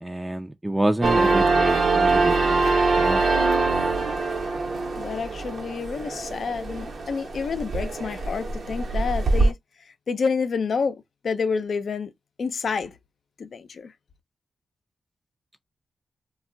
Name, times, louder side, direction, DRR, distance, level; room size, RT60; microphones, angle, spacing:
voice 1, 0.0-2.6 3.0-3.2, right 1 dB, 15° right, 0.4 m, -27 dB
sound 1, 1.0-9.5, right 3 dB, 70° right, 0.9 m, -23 dB
voice 2, 5.0-9.6 10.1-12.1 12.4-12.9 13.4-13.9, left 5 dB, 70° left, 0.5 m, -28 dB
2.3 x 2.1 x 3.7 m
cardioid pair, 55°, 0 cm